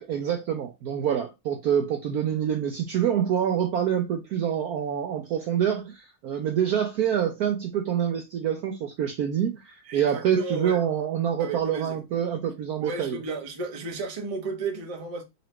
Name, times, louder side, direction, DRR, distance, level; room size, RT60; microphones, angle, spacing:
voice 1, 0.0-13.2, right 9 dB, 70° right, 0.9 m, -26 dB
voice 2, 9.8-10.8 11.4-12.0 12.8-15.2, right 3 dB, 35° right, 0.6 m, -33 dB
3.9 x 3.0 x 3.1 m
omnidirectional pair, 2.1 m